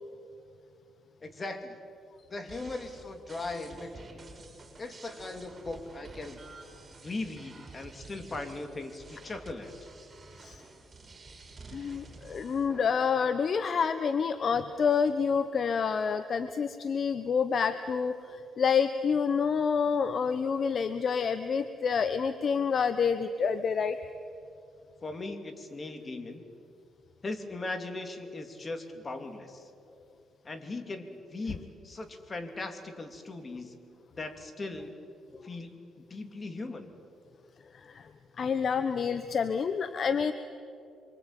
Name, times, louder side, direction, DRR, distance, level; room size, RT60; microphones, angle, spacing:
voice 1, 1.2-1.8 2.3-4.1 4.8-6.4 7.0-9.7 25.0-26.4 27.2-29.7 30.4-33.7 34.2-34.9 35.4-36.9, left 2 dB, 30° left, 7 dB, 3.1 m, -39 dB
sound 1, 2.5-12.9, right 3 dB, 35° right, 6.9 m, -50 dB
voice 2, 11.7-24.0 35.3-35.5 37.7-38.1 38.4-40.3, left 6 dB, 50° left, 11 dB, 1.1 m, -28 dB
27.0 x 24.5 x 9.1 m, 2.5 s
cardioid pair, 90°, 0 cm